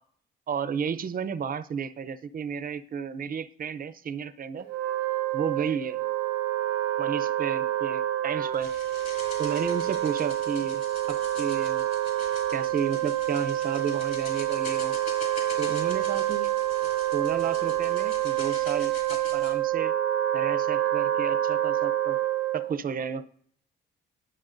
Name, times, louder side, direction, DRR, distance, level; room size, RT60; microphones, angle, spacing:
voice 1, 0.5-4.7 5.3-6.0 7.0-8.7 9.4-10.8 11.1-11.8 12.5-14.9 15.6-16.5 17.1-19.9 20.3-22.2 22.5-23.2, right 6 dB, 45° right, 14 dB, 0.7 m, -32 dB
Wind instrument woodwind instrument, 4.6-22.7, right 13 dB, 85° right, 0.9 m, -27 dB
sound 1, 8.5-19.6, left 4 dB, 50° left, 3.6 m, -44 dB
18.5 x 7.0 x 2.6 m, 0.62 s
cardioid pair, 90°, 20 cm